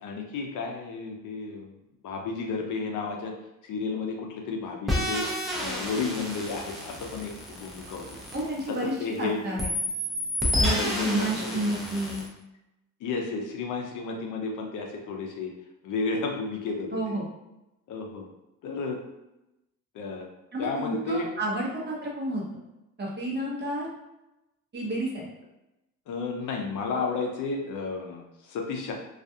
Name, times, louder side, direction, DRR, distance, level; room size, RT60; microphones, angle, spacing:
voice 1, 0.0-1.8 2.0-3.3 3.6-5.2 5.6-8.1 8.7-9.4 10.5-11.7 13.0-15.5 15.8-17.2 17.9-18.3 18.6-19.0 19.9-20.3 20.6-21.3 26.1-28.9, left 4 dB, 65° left, 1 dB, 0.6 m, -32 dB
sound 1, 4.9-9.2 9.6-12.3, left 1 dB, ahead, 0.6 m, -30 dB
voice 2, 8.3-9.7 10.6-12.2 16.9-17.2 20.5-22.4 23.0-23.9 24.7-25.3, right 1 dB, 30° right, -4 dB, 0.8 m, -30 dB
2.4 x 2.2 x 2.7 m, 0.93 s
cardioid pair, 110°, 34 cm